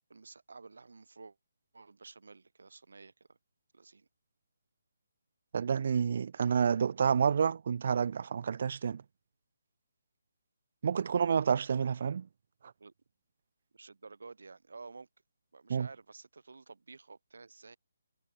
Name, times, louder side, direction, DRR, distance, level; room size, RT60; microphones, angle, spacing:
voice 1, 0.1-1.4 1.7-3.4 3.7-4.1 12.8-12.9 13.7-15.1 15.5-17.8, right 4 dB, 80° right, 1.0 m, -52 dB
voice 2, 5.5-9.0 10.8-12.3 15.7-15.9, right 7 dB, 50° right, 0.3 m, -29 dB
hypercardioid pair, 165°, 0 cm